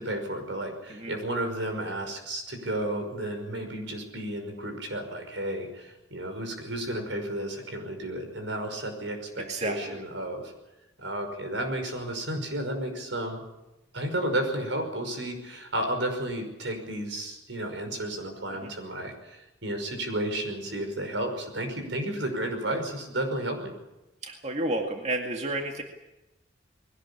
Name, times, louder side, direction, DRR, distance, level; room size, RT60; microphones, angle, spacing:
voice 1, 0.0-10.5 11.0-13.4 13.9-23.7, right 1 dB, 85° right, 5 dB, 5.6 m, -32 dB
voice 2, 9.5-10.0 18.6-18.7 24.2-25.8, right 2 dB, 35° right, 2 dB, 2.1 m, -31 dB
21.5 x 18.0 x 8.5 m, 0.97 s
head